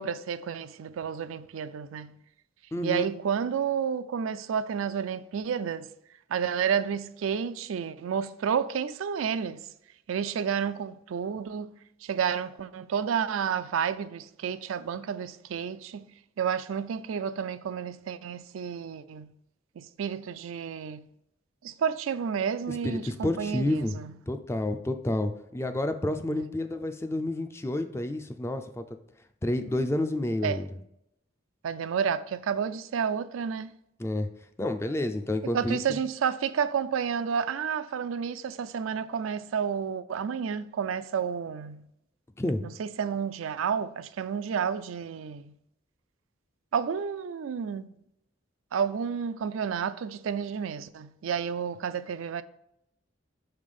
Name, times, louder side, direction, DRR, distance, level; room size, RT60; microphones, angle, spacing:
voice 1, 0.0-2.2 2.8-5.9 6.3-9.6 10.1-11.7 12.0-16.1 16.4-19.3 19.8-21.1 21.6-24.1 26.3-26.4 30.4-30.6 31.6-33.7 35.5-41.8 42.8-45.5 46.7-47.9 48.7-52.4, right 7 dB, 85° right, 0.4 m, -30 dB
voice 2, 2.7-3.0 22.7-24.0 24.3-28.8 29.4-30.8 34.0-34.3 34.6-35.8 42.4-42.6, left 1 dB, 15° left, 0.3 m, -29 dB
5.7 x 3.3 x 5.3 m
head